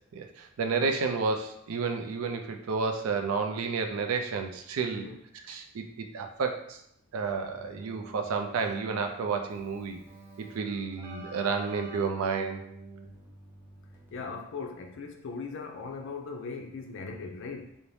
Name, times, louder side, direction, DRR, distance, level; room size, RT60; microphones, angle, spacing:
voice 1, 0.1-5.1 5.5-6.8 7.1-10.0 10.4-12.6, right 5 dB, 75° right, 0.4 m, -31 dB
Keyboard (musical), 7.2-14.5, right 3 dB, 10° right, 0.5 m, -47 dB
voice 2, 14.1-17.8, left 4 dB, 60° left, 0.4 m, -39 dB
2.6 x 2.1 x 3.2 m
head